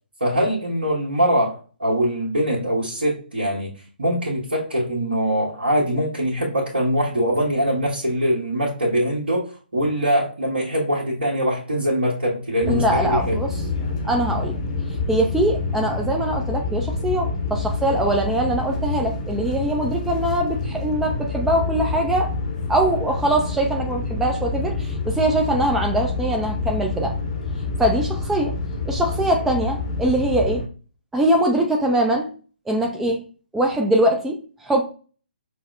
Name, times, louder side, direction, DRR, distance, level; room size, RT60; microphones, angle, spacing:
voice 1, 0.2-3.7 4.0-13.4, equal, 70° right, -7 dB, 1.4 m, -22 dB
sound 1, 12.6-30.6, left 3 dB, 35° left, 0.7 m, -27 dB
voice 2, 12.7-13.6 14.0-14.6 15.1-22.3 22.7-27.2 27.8-28.5 28.9-30.6 31.1-32.3 32.7-33.2 33.5-34.8, right 1 dB, 5° right, 1 dB, 0.3 m, -22 dB
6.0 x 2.0 x 2.5 m, 0.38 s
figure-of-eight pair, 135°, 6 cm